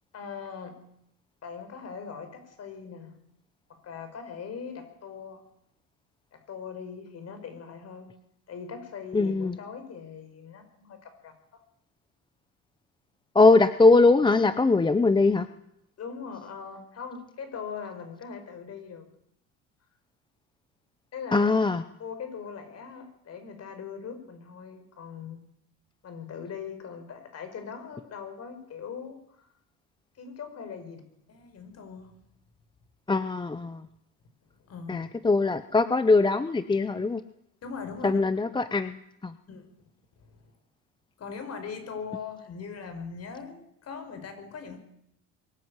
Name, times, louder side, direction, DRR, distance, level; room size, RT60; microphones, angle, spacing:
voice 1, 0.1-0.8 1.4-3.2 3.7-5.4 6.3-8.2 8.5-11.6 16.0-19.1 21.1-21.6 22.0-25.5 26.0-29.5 30.1-31.0 31.3-32.2 34.4-35.1 37.6-38.2 39.5-39.7 40.1-40.5 41.2-44.8, left 6 dB, 45° left, 8 dB, 5.4 m, -41 dB
voice 2, 9.1-9.6 13.3-15.5 21.3-21.8 33.1-33.9 34.9-37.2 38.0-39.3, left 3 dB, 15° left, 12 dB, 0.7 m, -21 dB
22.5 x 13.5 x 9.7 m, 0.77 s
cardioid pair, 135°, 34 cm